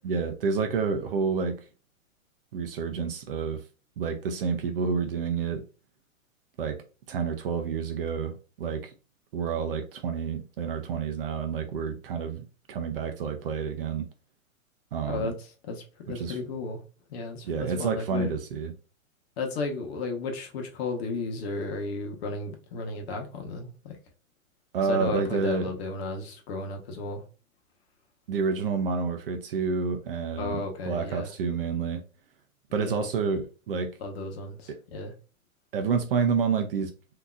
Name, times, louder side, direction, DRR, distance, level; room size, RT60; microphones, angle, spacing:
voice 1, 0.0-1.6 2.5-3.6 4.0-5.6 6.6-8.9 9.3-14.1 14.9-15.3 16.1-16.4 17.5-18.7 24.7-25.7 28.3-32.0 32.7-34.0 35.7-36.9, right 5 dB, 45° right, 0.5 m, -29 dB
voice 2, 15.1-15.8 16.1-16.8 17.1-18.3 19.4-24.0 24.9-27.2 30.4-31.3 32.7-32.9 34.0-35.1, left 3 dB, 45° left, 1.0 m, -34 dB
3.6 x 2.7 x 2.3 m
hypercardioid pair, 140°, 42 cm